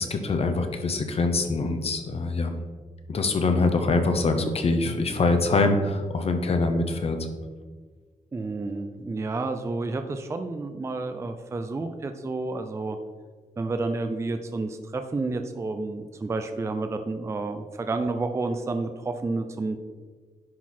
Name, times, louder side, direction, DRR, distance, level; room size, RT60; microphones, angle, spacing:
voice 1, 0.0-2.5 3.1-7.2, left 3 dB, 45° left, 6 dB, 0.8 m, -24 dB
voice 2, 8.3-13.0 13.6-19.8, right 3 dB, 20° right, 7 dB, 0.4 m, -30 dB
10.5 x 4.0 x 4.3 m, 1.4 s
wide cardioid pair, 175°, 14 cm